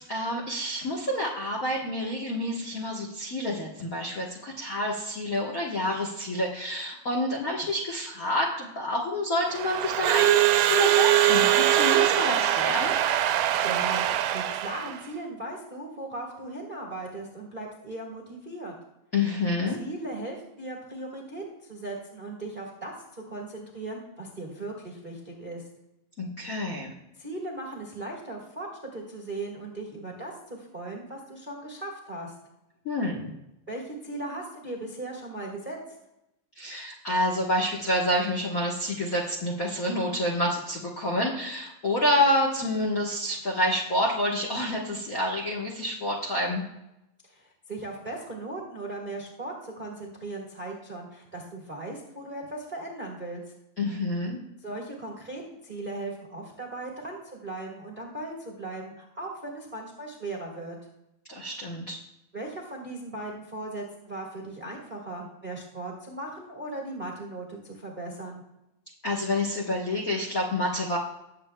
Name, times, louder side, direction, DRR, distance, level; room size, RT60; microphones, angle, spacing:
voice 1, 0.1-13.0 19.1-19.8 26.2-26.9 32.8-33.3 36.6-46.6 53.8-54.4 61.3-62.0 69.0-71.0, left 1 dB, 55° left, -2 dB, 0.9 m, -28 dB
Crowd / Alarm, 9.5-15.0, right 13 dB, 90° right, 2.0 m, -22 dB
voice 2, 13.6-14.1 14.3-18.7 19.8-22.9 23.3-25.6 27.2-32.3 33.7-35.8 47.3-53.4 54.6-60.8 62.3-68.4, right 2 dB, 35° right, -1 dB, 0.8 m, -38 dB
19.0 x 7.8 x 2.2 m, 0.89 s
omnidirectional pair, 3.3 m